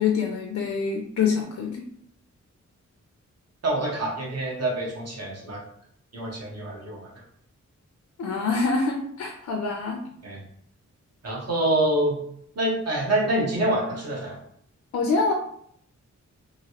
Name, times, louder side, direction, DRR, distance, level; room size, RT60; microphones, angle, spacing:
voice 1, 0.0-1.8 8.2-10.0 14.9-15.3, left 5 dB, 65° left, 2 dB, 0.5 m, -25 dB
voice 2, 3.6-5.6 6.1-7.0 10.2-10.4 11.2-12.2 12.5-14.4, right 1 dB, 55° right, -3 dB, 1.0 m, -26 dB
2.9 x 2.6 x 2.8 m, 0.67 s
wide cardioid pair, 125°, 30 cm